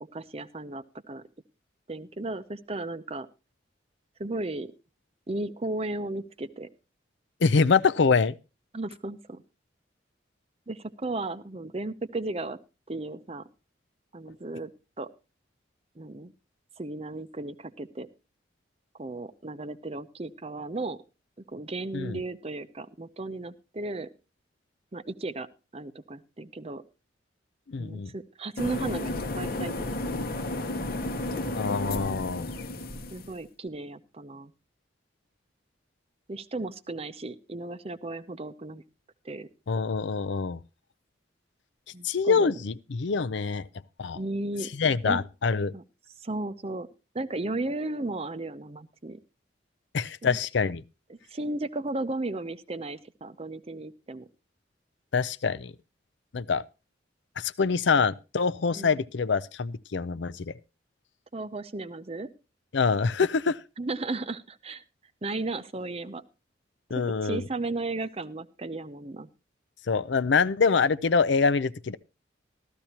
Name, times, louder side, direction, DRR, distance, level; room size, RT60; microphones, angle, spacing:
voice 1, 0.0-1.2 1.9-3.3 4.2-4.7 5.3-6.7 8.7-9.4 10.7-12.6 12.9-13.4 14.1-14.7 15.0-15.1 16.0-16.3 16.8-18.1 19.0-21.0 21.5-24.1 24.9-25.5 25.7-26.8 27.8-29.1 29.3-29.8 33.1-34.5 36.3-38.8 39.2-39.5 41.9-42.5 44.1-44.7 45.0-45.2 45.7-45.8 46.2-46.9 47.1-49.2 50.2-50.4 51.1-54.3 58.8-59.0 61.3-62.3 63.8-64.8 65.2-66.2 67.2-69.3, right 2 dB, 30° right, 0.7 m, -35 dB
voice 2, 7.4-8.4 21.9-22.2 27.7-28.1 31.5-32.5 39.7-40.6 42.0-43.7 44.0-44.2 44.7-45.7 49.9-50.8 55.1-55.7 56.3-56.6 57.4-60.5 62.7-63.6 66.9-67.5 69.9-72.0, left 5 dB, 70° left, 0.5 m, -25 dB
sound 1, 28.6-33.3, left 2 dB, 50° left, 0.9 m, -32 dB
14.0 x 13.5 x 2.9 m
head